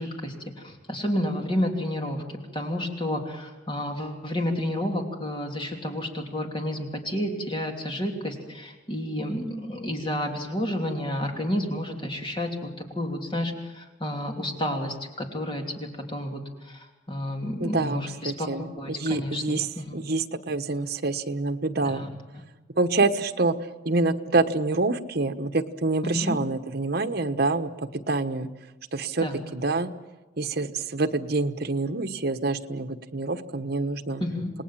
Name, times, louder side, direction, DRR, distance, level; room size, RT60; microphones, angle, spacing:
voice 1, 0.0-2.2 2.5-12.5 12.8-19.4 19.8-20.1 21.8-22.1 22.3-22.4 26.0-26.4 29.2-29.4 34.2-34.5, left 1 dB, 30° left, 2 dB, 3.3 m, -30 dB
voice 2, 17.6-19.7 19.9-22.0 22.8-28.5 28.9-29.3 29.5-29.9 30.4-34.2, right 3 dB, 60° right, 7 dB, 1.3 m, -26 dB
28.5 x 19.5 x 7.5 m, 1.1 s
head